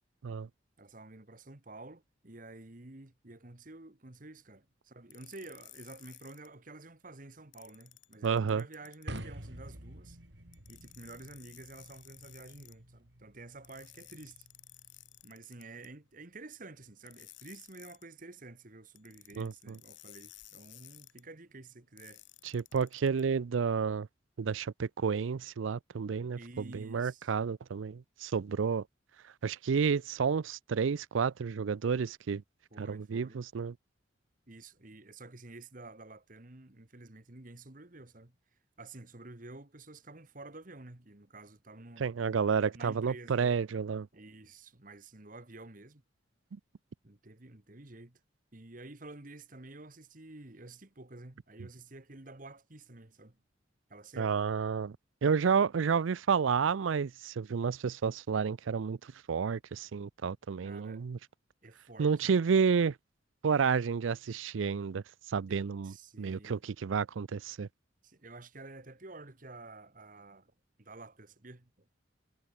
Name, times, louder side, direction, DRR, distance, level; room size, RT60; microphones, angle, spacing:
voice 1, 0.8-10.2 10.7-14.5 15.2-22.2 26.3-27.3 32.7-33.4 34.5-38.4 38.8-42.3 42.6-43.6 44.1-46.0 47.0-48.2 48.5-53.4 53.9-54.4 60.6-61.0 61.6-62.1 65.5-66.6 68.0-70.5 70.8-71.7, right 2 dB, 45° right, 1.6 m, -50 dB
sound 1, 5.1-6.5 7.5-9.2 10.5-12.8 13.6-15.9 17.1-18.1 19.0-21.2 22.0-23.2, left 16 dB, 75° left, 1.9 m, -55 dB
voice 2, 8.2-8.6 19.4-19.8 22.4-24.1 24.4-28.8 29.4-32.4 32.8-33.7 42.0-44.1 54.2-55.0 55.2-61.2 62.0-62.9 63.4-65.0 65.3-67.7, right 6 dB, 90° right, 0.5 m, -30 dB
sound 2, 9.1-15.2, right 1 dB, 65° right, 5.3 m, -49 dB
head